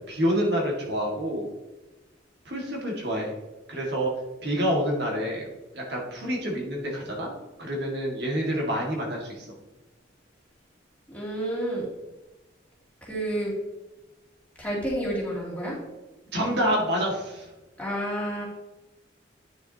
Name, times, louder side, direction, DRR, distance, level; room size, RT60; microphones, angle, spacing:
voice 1, 0.1-1.5 2.5-3.3 3.7-4.1 4.4-5.5 5.7-7.3 7.6-9.5 16.3-17.5, equal, 65° right, -1 dB, 2.1 m, -27 dB
voice 2, 11.1-11.8 13.0-13.5 14.6-15.8 17.8-18.4, right 1 dB, 10° left, -6 dB, 3.0 m, -29 dB
9.8 x 7.0 x 3.0 m, 1.1 s
head